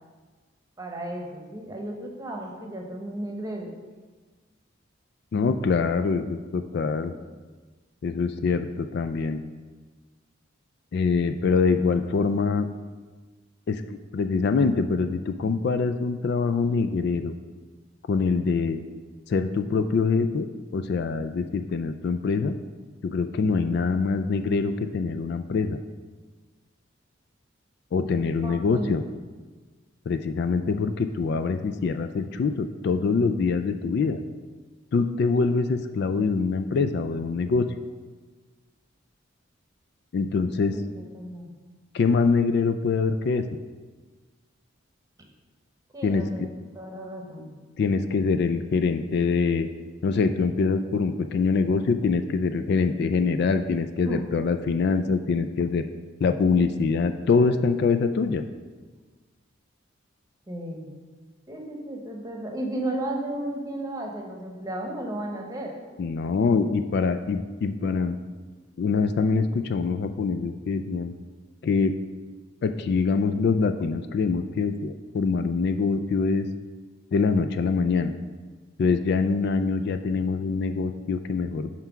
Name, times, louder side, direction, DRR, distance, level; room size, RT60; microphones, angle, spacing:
voice 1, 0.8-3.7 28.4-28.9 40.7-41.5 45.9-46.5 46.7-47.6 54.1-54.3 60.5-60.9 61.5-65.7, right 1 dB, 20° right, 0 dB, 1.0 m, -34 dB
voice 2, 5.3-7.2 8.0-9.4 10.9-12.7 13.7-13.8 14.1-17.3 18.1-18.8 19.3-22.6 23.0-25.8 27.9-29.0 30.1-34.2 34.9-37.7 40.1-40.8 41.9-43.4 46.0-46.5 47.8-49.7 50.0-55.9 56.2-58.4 66.0-68.2 68.8-71.1 71.6-71.9 72.6-76.5 77.1-78.1 78.8-81.8, left 4 dB, 55° left, 9 dB, 0.3 m, -24 dB
5.8 x 4.5 x 5.9 m, 1.4 s
head